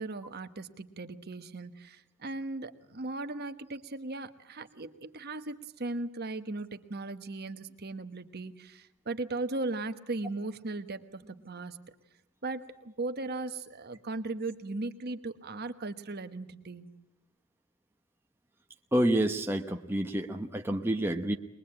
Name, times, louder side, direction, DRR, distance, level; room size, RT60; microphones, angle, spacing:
voice 1, 0.0-11.8 12.4-16.9, right 2 dB, 45° right, 9 dB, 1.3 m, -37 dB
voice 2, 18.9-21.3, right 1 dB, 10° right, 3 dB, 0.9 m, -28 dB
22.0 x 22.0 x 8.8 m, 0.89 s
head